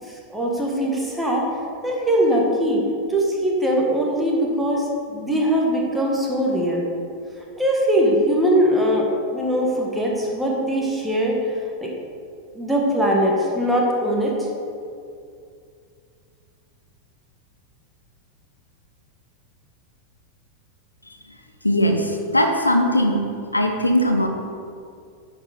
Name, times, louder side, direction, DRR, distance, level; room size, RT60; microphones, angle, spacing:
voice 1, 0.0-1.5 1.8-2.8 3.1-6.8 7.5-11.6 11.8-11.9 12.5-14.5, equal, 5° right, -2 dB, 1.7 m, -21 dB
voice 2, 21.6-23.2 23.5-24.3, equal, 85° left, 4 dB, 0.7 m, -19 dB
9.6 x 5.2 x 5.2 m, 2.4 s
figure-of-eight pair, 90°, 0 cm